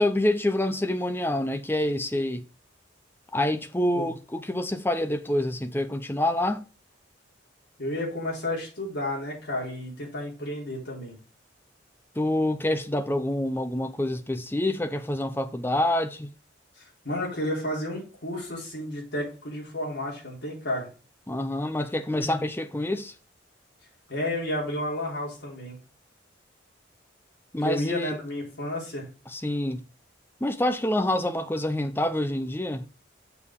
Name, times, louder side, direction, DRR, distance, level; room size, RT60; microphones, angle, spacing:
voice 1, 0.0-2.5 3.3-6.6 12.2-16.3 21.3-23.1 27.5-28.2 29.3-29.8 30.4-32.8, left 1 dB, 10° left, 0.6 m, -27 dB
voice 2, 7.8-11.2 16.8-20.9 24.1-25.8 27.6-29.1, left 1 dB, 65° left, 3.8 m, -31 dB
6.9 x 6.4 x 3.6 m
head